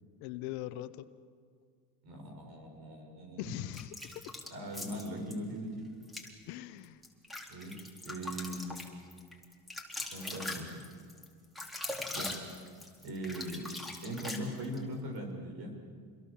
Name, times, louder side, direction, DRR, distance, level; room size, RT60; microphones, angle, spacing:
voice 1, 0.2-1.1 3.4-4.3 6.5-7.0, left 14 dB, 75° left, 12 dB, 1.3 m, -41 dB
voice 2, 2.0-3.5 4.5-5.9 7.5-7.7 8.0-8.8 10.1-10.7 12.1-12.3 13.0-13.7 14.0-15.8, right 1 dB, 55° right, 4 dB, 7.0 m, -40 dB
sound 1, 3.7-5.4 6.0-6.3 6.8-14.8, left 2 dB, ahead, 4.0 m, -41 dB
28.5 x 22.0 x 7.3 m, 2.1 s
supercardioid pair, 100°, 45 cm